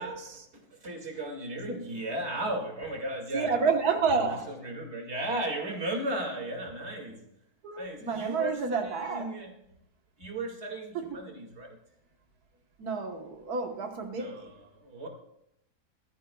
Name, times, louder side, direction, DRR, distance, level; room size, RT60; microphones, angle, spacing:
voice 1, 0.0-3.6 4.0-7.2 7.8-9.5 10.2-11.8 14.2-15.1, right 1 dB, 45° right, 2.4 m, -36 dB
voice 2, 3.3-4.5 7.6-9.4 11.0-11.2 12.8-14.5, right 5 dB, 80° right, 1.7 m, -29 dB
20.5 x 13.0 x 2.3 m
omnidirectional pair, 1.6 m